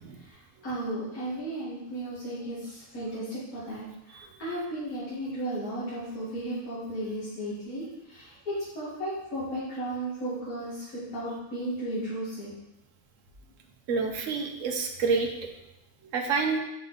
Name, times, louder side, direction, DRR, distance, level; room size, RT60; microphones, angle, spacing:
voice 1, 0.2-12.5, right 1 dB, 80° left, -11 dB, 2.3 m, -35 dB
voice 2, 13.9-15.3 16.1-16.6, right 4 dB, 65° right, 3 dB, 1.2 m, -28 dB
5.4 x 5.2 x 3.9 m, 0.90 s
omnidirectional pair, 1.5 m